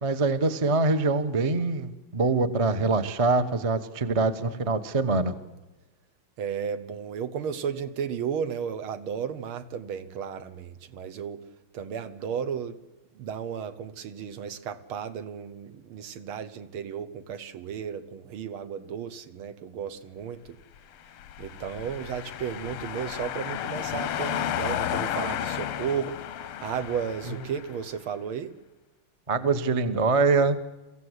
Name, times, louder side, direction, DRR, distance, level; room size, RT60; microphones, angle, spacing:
voice 1, 0.0-5.3 29.3-30.6, right 3 dB, 25° right, 0.7 m, -24 dB
voice 2, 6.4-11.5 11.7-12.8 13.1-20.6 21.4-26.2 26.6-28.5, right 7 dB, 75° right, 2.0 m, -34 dB
sound 1, 21.1-27.8, left 11 dB, 90° left, 1.8 m, -33 dB
23.5 x 15.5 x 8.1 m
omnidirectional pair, 2.4 m